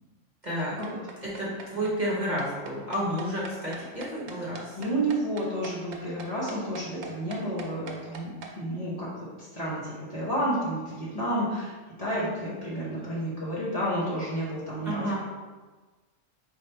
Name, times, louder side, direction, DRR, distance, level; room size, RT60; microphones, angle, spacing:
voice 1, 0.4-0.7 1.2-4.8 14.8-15.1, equal, 35° right, -7 dB, 1.1 m, -31 dB
sound 1, 0.6-8.5, right 4 dB, 80° right, 1.0 m, -42 dB
voice 2, 4.7-11.7 12.0-15.1, right 1 dB, 30° left, -9 dB, 1.2 m, -31 dB
4.1 x 2.8 x 4.4 m, 1.3 s
omnidirectional pair, 1.3 m